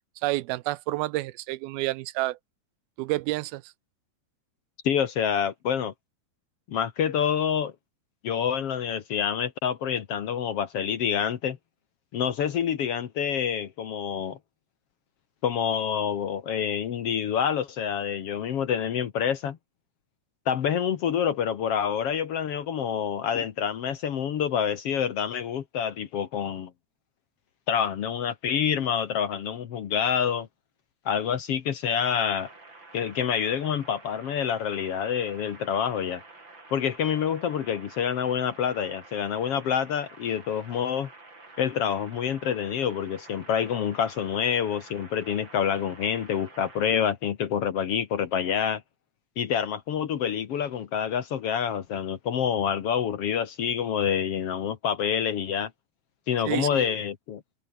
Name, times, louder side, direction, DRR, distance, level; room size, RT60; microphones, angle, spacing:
voice 1, 0.2-2.4 3.0-3.7 56.5-56.9, right 18 dB, 80° right, 2.3 m, -29 dB
voice 2, 4.8-5.9 6.7-7.7 8.2-11.6 12.1-14.4 15.4-19.6 20.4-26.7 27.7-30.5 31.0-32.5 32.9-36.2 36.7-41.1 41.6-48.8 49.4-55.7 56.3-57.4, left 8 dB, 70° left, 1.4 m, -27 dB
sound 1, 32.0-47.0, right 3 dB, 25° right, 6.4 m, -49 dB
omnidirectional pair, 4.7 m